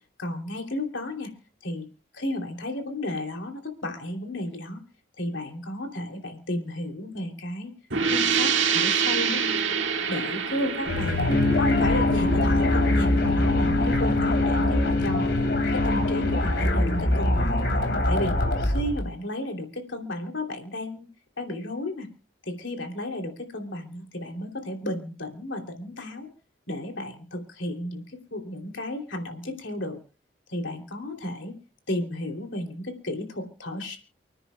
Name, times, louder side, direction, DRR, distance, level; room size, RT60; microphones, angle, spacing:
voice 1, 0.2-1.3 1.6-1.9 2.1-4.8 5.2-7.7 8.1-9.4 10.1-11.3 11.6-15.3 15.7-17.6 18.1-21.1 21.4-22.1 22.4-26.3 26.7-30.0 30.5-31.5 31.9-34.0, left 1 dB, 80° left, 3 dB, 3.0 m, -33 dB
sound 1, 7.9-13.4, right 6 dB, 80° right, 1.8 m, -27 dB
sound 2, 10.8-19.1, left 1 dB, 65° left, 3.1 m, -25 dB
sound 3, 11.3-16.4, left 2 dB, 25° left, 1.6 m, -25 dB
30.0 x 10.0 x 2.3 m, 0.35 s
head